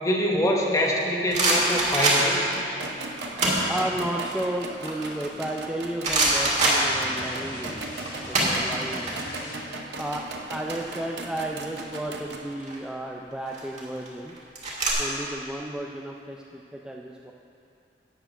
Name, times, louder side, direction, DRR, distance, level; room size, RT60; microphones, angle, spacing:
voice 1, 0.0-2.5, equal, 20° left, -1 dB, 1.2 m, -24 dB
sound 1, 0.9-2.5 3.2-3.7 4.1-5.6 6.0-7.4 7.7-9.1 9.4-9.6 9.9-11.4 12.4-12.8 13.5-14.9, right 2 dB, 40° right, 2.0 m, -24 dB
sound 2, 1.5-12.4, right 2 dB, 70° right, 0.9 m, -38 dB
voice 2, 3.7-7.8 8.3-9.1 10.0-14.3 15.0-17.3, right 1 dB, 5° right, -1 dB, 0.4 m, -33 dB
sound 3, 6.7-9.9, left 1 dB, 50° left, 2.2 m, -41 dB
11.5 x 4.6 x 8.1 m, 2.7 s
head